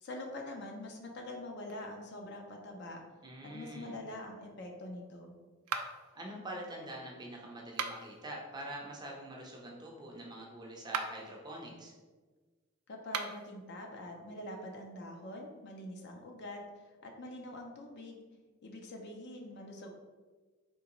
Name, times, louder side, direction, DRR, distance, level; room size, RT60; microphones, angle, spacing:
voice 1, 0.0-3.0 3.4-5.3 12.9-16.6 17.0-18.2 18.6-19.9, left 1 dB, 50° left, 2 dB, 0.5 m, -44 dB
voice 2, 3.2-4.0 6.2-11.9, right 1 dB, 20° right, -1 dB, 0.5 m, -45 dB
sound 1, 5.7-6.2 7.6-8.2 10.8-11.3 13.0-13.5, right 6 dB, 80° right, 0.3 m, -38 dB
3.6 x 2.9 x 3.0 m, 1.3 s
head